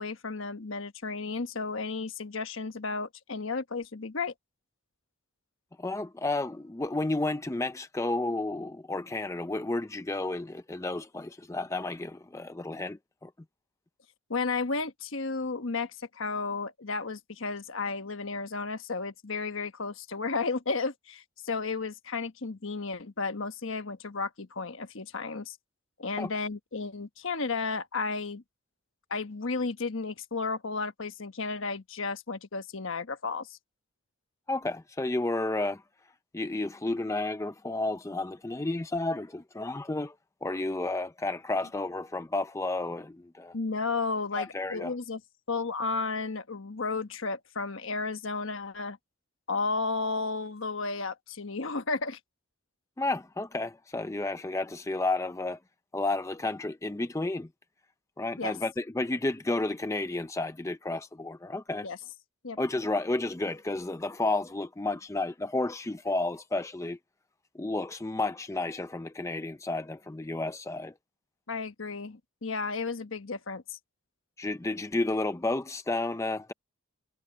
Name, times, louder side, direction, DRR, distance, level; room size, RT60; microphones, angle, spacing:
voice 1, 0.0-4.3 14.3-25.6 26.0-28.4 29.1-33.6 43.5-45.2 45.5-49.0 49.5-52.2 58.4-58.5 61.8-62.0 62.4-62.6 71.5-73.8, left 4 dB, 60° left, 1.2 m, -33 dB
voice 2, 5.8-13.3 26.2-26.3 34.5-35.8 36.3-40.1 40.4-43.5 44.4-44.9 53.0-55.6 55.9-57.5 58.2-61.9 62.6-67.0 67.6-70.9 74.4-76.5, left 2 dB, 15° left, 0.5 m, -31 dB
head